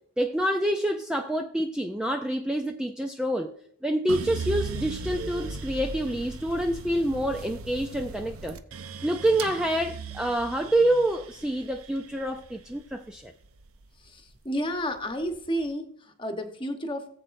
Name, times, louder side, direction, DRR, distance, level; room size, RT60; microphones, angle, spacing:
voice 1, 0.2-3.5 3.8-8.6 9.0-13.3, right 1 dB, 5° right, 0.3 m, -27 dB
sound 1, 4.1-14.3 14.7-15.5, right 4 dB, 70° right, 0.7 m, -38 dB
voice 2, 14.0-17.1, equal, 20° left, 1.0 m, -31 dB
18.0 x 7.7 x 2.6 m
head